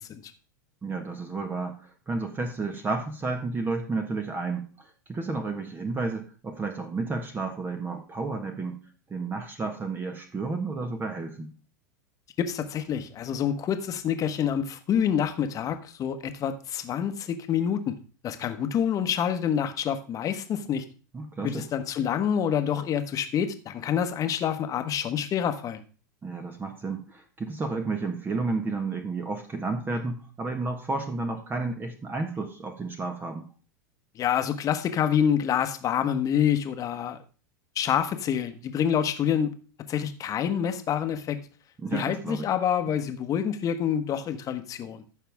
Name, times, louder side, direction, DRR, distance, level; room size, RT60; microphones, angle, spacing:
voice 1, 0.8-8.8 9.1-11.5 21.1-21.7 26.2-33.5 41.8-42.5 42.9-43.0, right 3 dB, 20° right, 5 dB, 1.5 m, -32 dB
voice 2, 12.4-17.9 18.2-20.8 21.4-25.8 34.2-37.2 37.8-39.5 39.9-41.4 41.9-45.0, left 8 dB, 35° left, 9 dB, 1.3 m, -27 dB
14.5 x 5.8 x 3.6 m, 0.38 s
hypercardioid pair, 95°, 10 cm